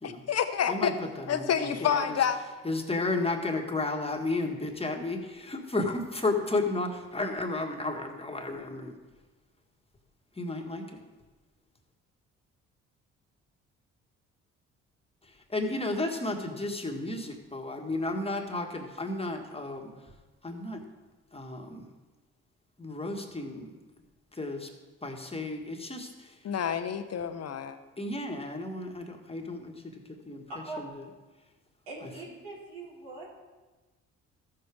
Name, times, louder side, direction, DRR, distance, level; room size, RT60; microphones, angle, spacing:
voice 1, 0.0-0.9 1.3-2.4 26.4-27.8, left 8 dB, 45° left, 9 dB, 1.0 m, -28 dB
voice 2, 0.7-2.3 2.6-8.9 10.4-11.0 15.2-19.9 20.4-20.8 21.3-21.9 22.8-23.7 24.3-24.7 25.0-26.4 28.0-31.1 32.0-32.1, left 2 dB, 15° left, 3 dB, 1.7 m, -33 dB
voice 3, 30.5-30.8 31.9-33.3, right 2 dB, 85° right, -5 dB, 2.9 m, -41 dB
14.5 x 6.6 x 3.6 m, 1.2 s
hypercardioid pair, 50°, 35 cm